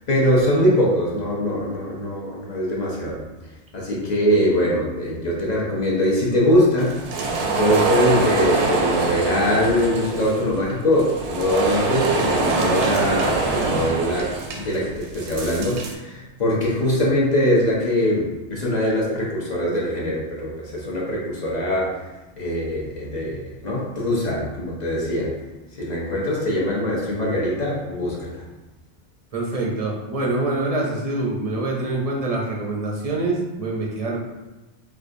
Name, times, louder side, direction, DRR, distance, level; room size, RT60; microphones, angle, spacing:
voice 1, 0.0-3.2 3.7-7.1 7.6-22.0 22.4-25.4 25.7-28.4, equal, 45° left, -4 dB, 0.7 m, -22 dB
sound 1, 6.8-15.9, right 3 dB, 80° right, 0.9 m, -24 dB
voice 2, 29.3-34.2, right 2 dB, 45° right, -2 dB, 0.5 m, -25 dB
4.5 x 2.4 x 2.5 m, 1.1 s
omnidirectional pair, 1.2 m